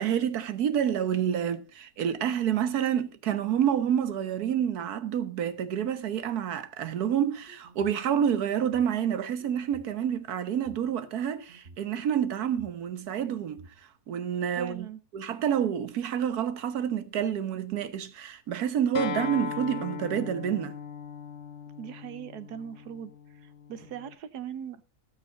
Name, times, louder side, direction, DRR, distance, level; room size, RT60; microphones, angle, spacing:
voice 1, 0.0-13.6 14.1-14.9 15.1-20.8, right 9 dB, 75° right, 1.5 m, -28 dB
sound 1, 7.3-8.0 8.6-10.0 10.5-11.8 12.4-13.7, right 2 dB, 45° right, 1.6 m, -53 dB
voice 2, 14.6-15.0 21.8-23.1 23.4-24.8, right 9 dB, 90° right, 1.5 m, -40 dB
Acoustic guitar, 18.9-24.1, left 6 dB, 55° left, 1.1 m, -38 dB
17.5 x 6.2 x 3.8 m
omnidirectional pair, 1.7 m